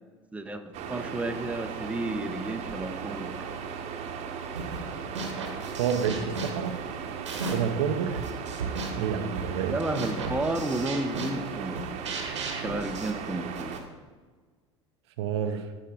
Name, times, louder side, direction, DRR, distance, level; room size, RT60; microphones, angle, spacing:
voice 1, 0.3-0.6 0.9-3.4 9.7-11.8 12.6-13.7, right 2 dB, 10° right, 0.7 m, -32 dB
sound 1, 0.7-13.8, right 6 dB, 45° right, 1.0 m, -37 dB
sound 2, 4.6-4.9 5.2-7.8 8.1-13.9, right 3 dB, 80° right, 1.2 m, -36 dB
voice 2, 5.8-6.8 7.5-8.3 9.0-9.8 15.2-15.7, right 7 dB, 65° right, 0.6 m, -29 dB
13.5 x 4.6 x 3.8 m
figure-of-eight pair, 70°, 15 cm